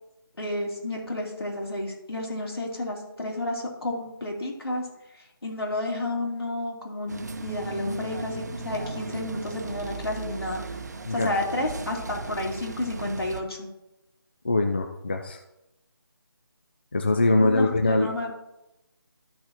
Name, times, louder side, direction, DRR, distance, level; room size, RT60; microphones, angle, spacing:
voice 1, 0.4-4.9 5.1-10.8 11.1-13.7 17.4-18.3, left 1 dB, 90° left, -1 dB, 3.1 m, -31 dB
sound 1, 7.1-13.4, right 3 dB, 45° right, 0.7 m, -36 dB
voice 2, 14.4-15.4 16.9-18.3, left 2 dB, 25° left, 4 dB, 0.4 m, -23 dB
13.0 x 6.2 x 2.9 m, 0.93 s
figure-of-eight pair, 170°, 12 cm